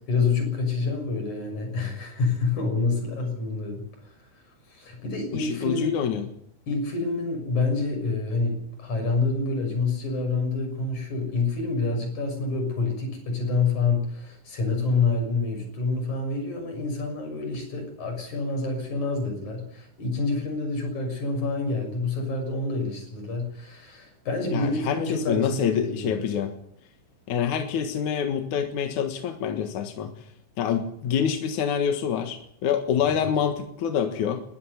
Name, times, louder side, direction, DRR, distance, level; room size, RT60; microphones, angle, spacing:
voice 1, 0.1-3.8 4.7-5.9 6.7-26.3 33.1-33.3, left 3 dB, 40° left, 3 dB, 7.5 m, -27 dB
voice 2, 5.3-6.3 24.5-26.5 27.3-30.1 30.6-34.4, left 8 dB, 60° left, 6 dB, 2.1 m, -26 dB
21.0 x 13.5 x 9.9 m, 0.67 s
omnidirectional pair, 5.6 m